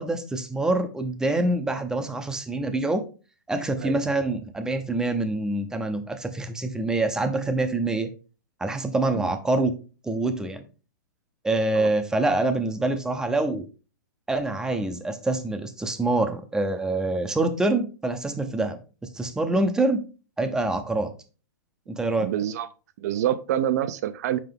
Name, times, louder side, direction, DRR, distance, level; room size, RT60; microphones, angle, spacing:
voice 1, 0.0-3.1 3.5-8.1 8.6-9.7 10.0-10.6 11.4-13.7 14.3-20.0 20.4-21.1 21.9-22.3, right 2 dB, 5° right, 0.6 m, -25 dB
voice 2, 22.2-22.7 23.0-24.4, right 11 dB, 50° right, 0.5 m, -26 dB
5.9 x 4.5 x 3.6 m
hypercardioid pair, 145°, 11 cm